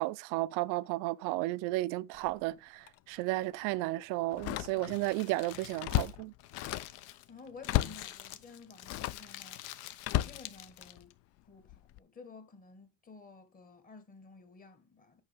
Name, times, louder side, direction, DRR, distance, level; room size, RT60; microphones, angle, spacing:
voice 1, 0.0-6.3, right 19 dB, 85° right, 0.6 m, -33 dB
Slam, 2.1-2.4 2.9-3.0 4.3-5.1 5.5-7.0 7.6-8.1 8.8-9.3 10.0-11.1 11.7-12.0, left 15 dB, 55° left, 0.4 m, -34 dB
Crumpling crinkling, 4.3-11.1, left 13 dB, 75° left, 0.9 m, -47 dB
voice 2, 7.3-9.6 10.2-11.1 11.5-15.2, left 4 dB, 25° left, 1.5 m, -53 dB
8.8 x 5.4 x 3.4 m
cardioid pair, 135°, 30 cm